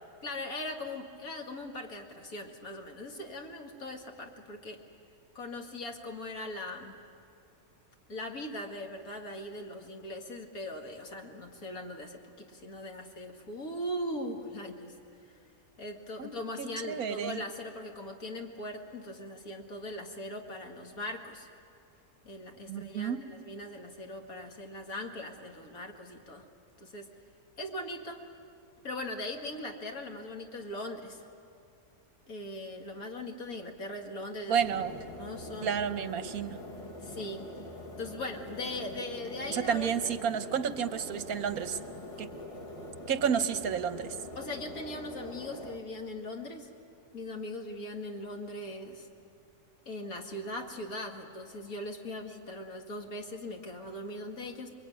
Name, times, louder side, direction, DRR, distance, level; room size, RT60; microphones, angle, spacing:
voice 1, 0.2-4.8 5.3-6.9 8.1-15.0 15.2-15.3 15.8-21.5 22.2-26.5 26.8-27.1 27.6-28.2 28.8-31.3 32.3-34.6 35.1-35.7 37.0-37.5 38.0-39.9 43.3-43.4 44.3-46.7 47.1-49.1 49.9-54.7, left 1 dB, 75° left, 2 dB, 2.5 m, -40 dB
voice 2, 16.6-17.4 22.7-23.2 34.5-34.9 35.6-36.6 39.5-41.8 42.2-42.3 43.1-44.2, right 7 dB, 75° right, 11 dB, 1.4 m, -31 dB
sound 1, 34.6-45.8, left 1 dB, 20° left, 1.6 m, -44 dB
27.5 x 22.5 x 9.4 m, 2.5 s
omnidirectional pair, 1.5 m